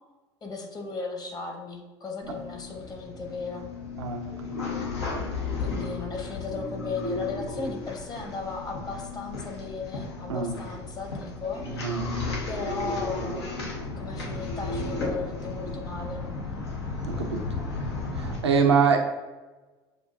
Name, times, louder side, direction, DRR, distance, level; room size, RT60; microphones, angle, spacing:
voice 1, 0.4-3.7 5.6-11.9 12.5-13.6 14.0-16.2, left 4 dB, 30° left, 2 dB, 1.0 m, -36 dB
sound 1, 2.2-18.4, left 3 dB, 80° left, 1.0 m, -34 dB
voice 2, 4.0-4.3 4.6-4.7 10.3-10.5 11.8-12.1 17.1-17.7 18.1-19.0, right 6 dB, 85° right, 2 dB, 0.6 m, -24 dB
6.7 x 2.5 x 2.5 m, 1.2 s
hypercardioid pair, 70°, 14 cm